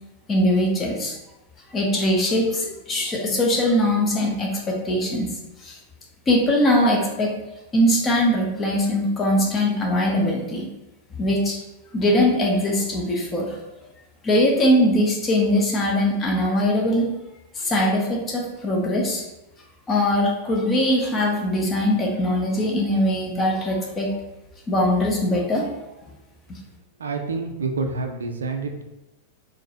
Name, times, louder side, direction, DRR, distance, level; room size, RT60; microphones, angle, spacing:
voice 1, 0.3-1.2 1.7-5.3 5.6-5.8 6.3-7.3 7.7-10.7 11.1-11.6 11.9-13.5 14.2-17.1 17.5-19.2 19.9-24.1 24.7-25.7, left 1 dB, 20° left, 0 dB, 0.8 m, -21 dB
voice 2, 27.0-28.8, right 4 dB, 70° right, 5 dB, 0.4 m, -28 dB
3.9 x 2.5 x 2.8 m, 0.98 s
figure-of-eight pair, 90°, 0 cm